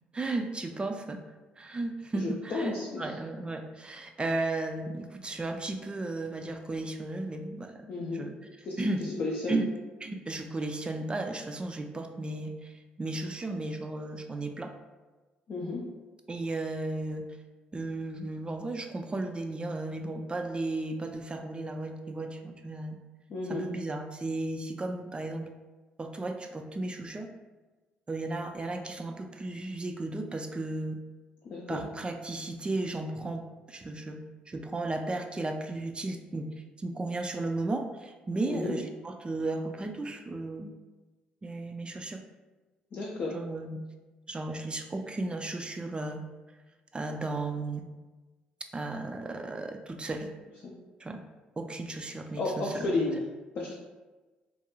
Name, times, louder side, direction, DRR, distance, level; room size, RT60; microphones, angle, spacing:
voice 1, 0.1-1.2 1.6-9.0 9.5-9.7 10.0-14.7 16.3-17.3 17.7-23.0 23.5-25.5 26.0-27.3 28.1-31.0 31.7-36.5 36.8-40.7 41.4-42.2 43.3-43.8 44.3-46.2 46.9-47.8 48.7-50.3 51.0-51.2 51.6-52.9, right 2 dB, 25° right, 5 dB, 0.3 m, -35 dB
voice 2, 2.2-3.0 7.9-8.3 8.7-8.9 9.2-9.6 15.5-15.8 23.3-23.7 31.4-31.9 38.4-38.8 42.9-43.3 50.6-50.7 52.4-53.2 53.5-53.7, left 3 dB, 55° left, -3 dB, 0.4 m, -32 dB
2.4 x 2.2 x 2.9 m, 1.2 s
hypercardioid pair, 55°, 4 cm